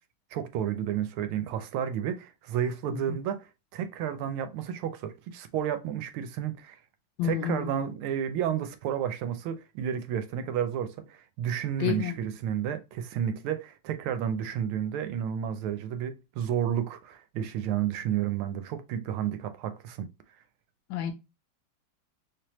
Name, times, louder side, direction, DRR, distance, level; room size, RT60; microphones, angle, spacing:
voice 1, 0.3-6.8 7.2-20.1, right 9 dB, 85° right, 1.5 m, -31 dB
voice 2, 2.9-3.2 7.2-7.7 11.8-12.1 20.9-21.1, left 9 dB, 75° left, 1.2 m, -30 dB
3.4 x 3.2 x 2.8 m
omnidirectional pair, 2.3 m